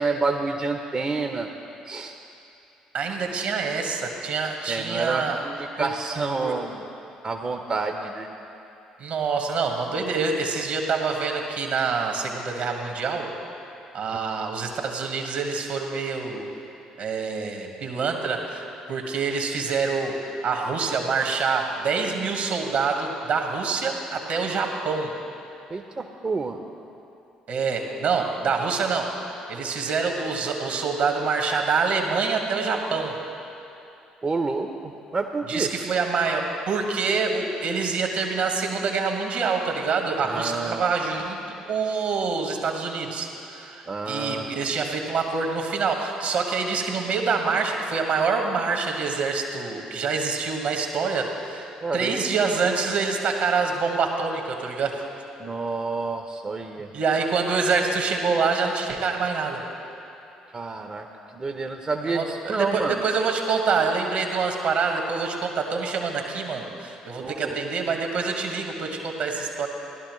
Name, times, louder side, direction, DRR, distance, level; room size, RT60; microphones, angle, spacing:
voice 1, 0.0-1.5 1.9-2.1 4.7-6.8 7.2-8.3 25.7-26.6 34.2-35.7 40.2-40.8 43.9-44.5 51.8-52.2 55.4-56.9 60.5-61.1 61.3-62.9 67.2-67.4, right 3 dB, 30° right, 4 dB, 0.6 m, -28 dB
voice 2, 2.9-5.4 5.8-5.9 6.4-6.5 9.0-13.3 13.9-16.5 17.0-25.1 27.5-33.2 35.5-55.0 56.9-59.6 62.0-69.7, right 4 dB, 60° right, 2 dB, 1.5 m, -26 dB
16.5 x 11.5 x 3.1 m, 2.8 s
hypercardioid pair, 50°, 3 cm